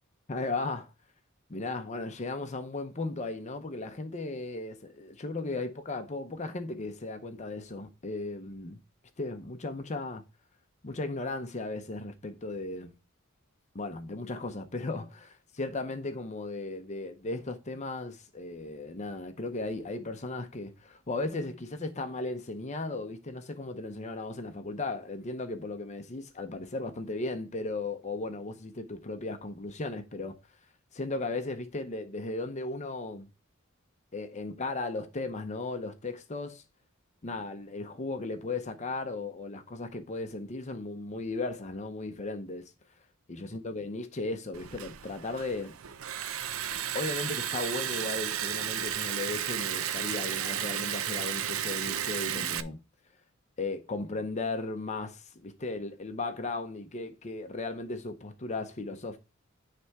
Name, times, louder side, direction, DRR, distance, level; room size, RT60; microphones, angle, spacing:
voice 1, 0.3-0.9 1.5-8.8 9.2-10.2 10.8-12.9 13.7-30.3 30.9-33.3 34.1-36.6 37.2-42.6 43.3-45.8 46.9-52.8 53.6-59.2, left 2 dB, 35° left, 0.7 m, -36 dB
Liquid, 44.5-52.6, right 10 dB, 85° right, 0.5 m, -33 dB
9.8 x 3.4 x 4.7 m
head